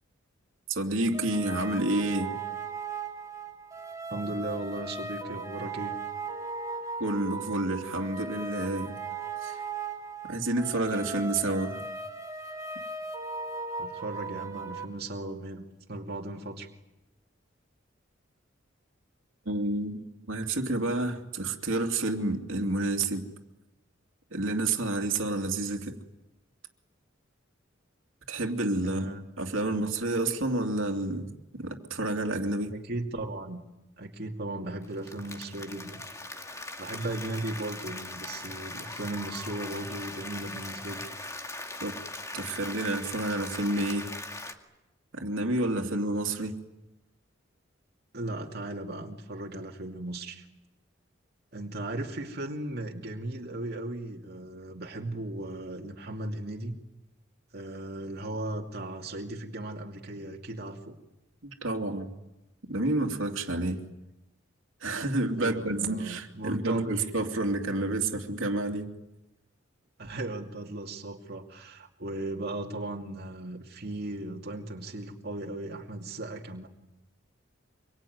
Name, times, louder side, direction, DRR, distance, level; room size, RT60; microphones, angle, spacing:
voice 1, 0.7-2.3 7.0-9.0 9.4-9.6 10.2-11.8 19.5-23.3 24.3-26.0 28.3-29.1 29.4-32.7 41.8-41.9 42.3-44.1 45.1-46.6 61.4-62.1 62.6-63.9 64.8-68.9, right 2 dB, 85° right, 2 dB, 2.8 m, -29 dB
sound 1, 1.1-14.8, right 4 dB, 15° right, 3.6 m, -38 dB
voice 2, 4.1-5.9 13.8-16.7 28.8-29.2 32.7-33.6 34.0-36.0 36.8-41.1 48.1-50.5 51.5-56.8 57.5-61.0 65.4-67.0 70.0-76.7, right 1 dB, 55° right, 0 dB, 2.5 m, -37 dB
Applause, 34.8-44.5, left 2 dB, 15° left, 2.2 m, -40 dB
26.0 x 23.5 x 9.5 m, 0.97 s
head